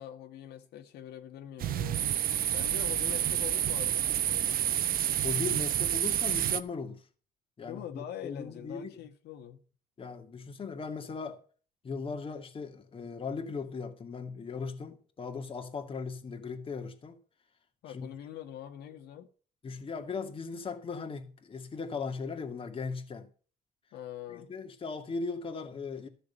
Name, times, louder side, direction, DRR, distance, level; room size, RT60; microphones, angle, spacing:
voice 1, 0.0-2.0 2.5-5.0 7.6-9.6 17.8-19.3 23.9-24.5, left 10 dB, 75° left, 2.0 m, -44 dB
sound 1, 1.6-6.6, right 11 dB, 60° right, 1.0 m, -29 dB
voice 2, 5.2-7.0 7.6-8.9 10.0-11.4 11.8-17.2 17.9-18.1 19.6-23.3 24.3-26.1, left 4 dB, 30° left, 2.2 m, -38 dB
13.5 x 6.7 x 6.8 m
cardioid pair, 110°, 17 cm